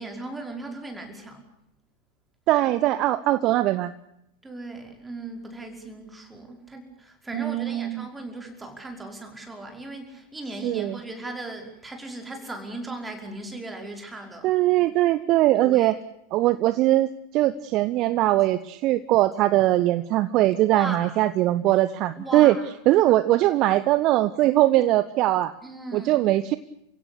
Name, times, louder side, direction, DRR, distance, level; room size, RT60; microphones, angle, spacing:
voice 1, 0.0-1.5 4.4-14.6 15.6-15.9 20.7-21.1 22.2-22.6 25.6-26.1, right 2 dB, 10° right, 3 dB, 5.3 m, -37 dB
voice 2, 2.5-3.9 7.3-8.1 10.6-11.0 14.4-16.0 16.3-22.6 22.9-25.5 25.9-26.6, right 15 dB, 40° right, 15 dB, 0.9 m, -21 dB
29.5 x 16.5 x 8.4 m, 0.80 s
figure-of-eight pair, 90°, 0 cm